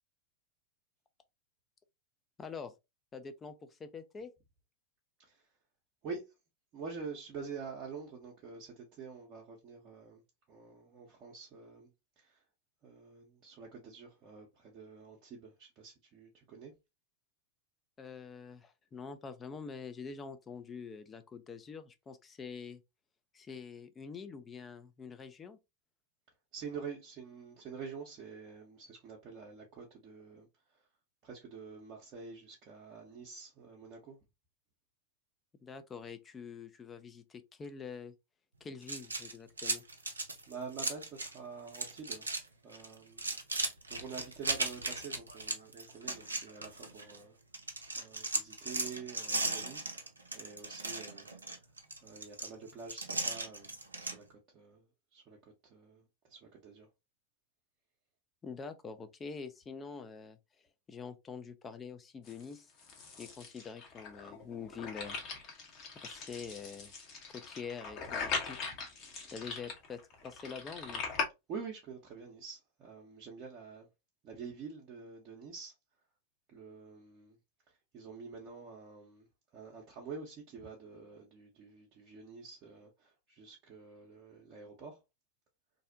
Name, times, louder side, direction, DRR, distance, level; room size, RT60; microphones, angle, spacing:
voice 1, 2.4-2.7 3.1-4.3 18.0-22.8 23.3-25.6 35.6-38.1 38.6-39.8 58.4-60.4 60.9-62.7 63.2-65.2 65.9-66.9 67.3-68.6 69.3-71.0, left 5 dB, 20° left, 0.4 m, -45 dB
voice 2, 6.7-10.2 10.5-11.9 12.2-12.4 12.8-16.7 26.5-30.5 31.2-34.2 40.5-42.3 42.6-43.4 43.9-47.3 48.0-49.8 50.3-51.3 52.0-53.7 54.0-54.2 54.5-54.8 55.1-55.4 55.7-56.9 71.5-73.9 74.2-75.7 76.5-77.4 77.9-79.3 79.5-85.0, right 5 dB, 35° right, 0.6 m, -47 dB
sound 1, 38.8-41.4 41.7-42.4 42.7-47.2 47.5-54.2, right 2 dB, 80° right, 0.4 m, -37 dB
sound 2, 62.3-71.3, left 4 dB, 40° left, 0.7 m, -41 dB
2.6 x 2.0 x 2.5 m
figure-of-eight pair, 95°, 0 cm